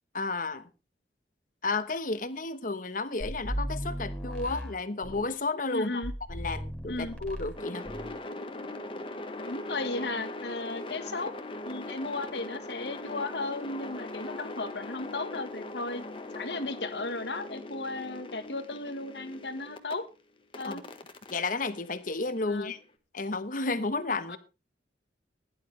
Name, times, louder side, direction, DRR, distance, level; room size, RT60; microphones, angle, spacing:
voice 1, 0.1-0.7 1.6-6.0 6.3-7.9 20.6-20.8 21.3-22.8 23.1-24.4, left 3 dB, 50° left, 1.2 m, -32 dB
sound 1, 3.2-5.3 6.0-7.6 7.8-8.2, equal, 5° left, 4.3 m, -36 dB
voice 2, 5.7-6.1 6.9-7.2 9.4-11.3 11.6-16.0 16.3-20.0 20.6-20.9 22.5-22.7 24.3-24.4, left 2 dB, 70° left, 1.6 m, -35 dB
sound 2, 7.6-19.9 20.5-22.7, left 2 dB, 30° left, 1.5 m, -41 dB
16.5 x 11.5 x 3.4 m
head